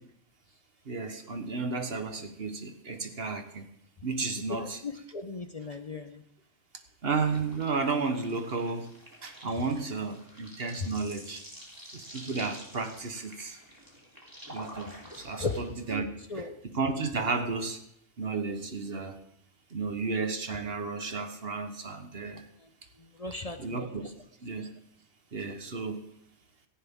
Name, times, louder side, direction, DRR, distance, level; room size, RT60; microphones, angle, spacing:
voice 1, 0.9-3.6 4.0-4.8 7.0-8.9 9.2-11.4 11.9-13.6 14.5-16.1 16.7-17.8 18.2-19.2 19.7-22.4 23.6-24.1 24.4-24.7 25.3-26.1, right 4 dB, 55° right, 7 dB, 1.5 m, -33 dB
voice 2, 4.5-6.2 10.8-10.9 15.0-15.6 15.9-16.0 16.3-16.5 22.6-22.7 23.0-24.1, left 3 dB, 35° left, 7 dB, 0.8 m, -37 dB
sound 1, 7.1-15.6, equal, 15° right, 3.3 m, -48 dB
17.0 x 14.5 x 3.7 m, 0.72 s
omnidirectional pair, 1.2 m